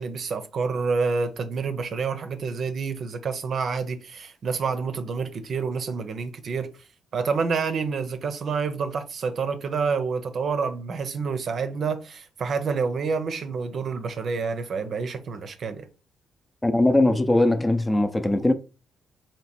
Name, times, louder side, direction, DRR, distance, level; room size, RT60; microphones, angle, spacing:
voice 1, 0.0-6.7 7.1-15.9, right 5 dB, 55° right, 0.6 m, -28 dB
voice 2, 16.6-18.5, left 1 dB, 15° left, 0.6 m, -20 dB
3.1 x 3.0 x 4.3 m
cardioid pair, 90°, 0 cm